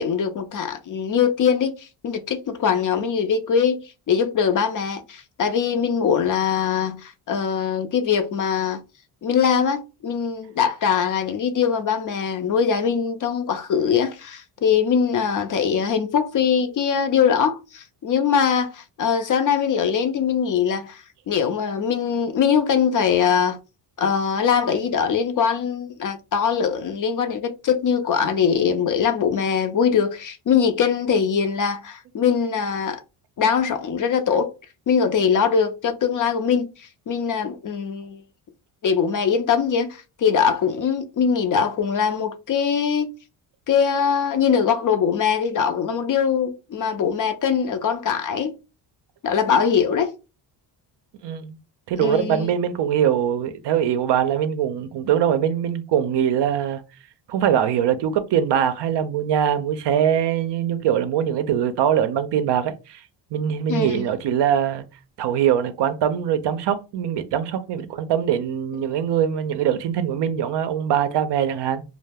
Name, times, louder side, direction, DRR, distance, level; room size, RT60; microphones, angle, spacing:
voice 1, 0.0-3.8 4.1-8.8 9.2-23.6 24.0-33.0 33.4-34.5 34.9-38.2 38.8-43.1 43.7-48.5 49.2-50.1 52.0-52.5 63.7-64.1, left 7 dB, 40° left, 0.5 m, -22 dB
voice 2, 51.2-51.6 51.9-56.8 57.3-63.0 63.3-64.8 65.2-71.8, right 9 dB, 60° right, 0.5 m, -22 dB
2.2 x 2.0 x 3.3 m
supercardioid pair, 75°, 49 cm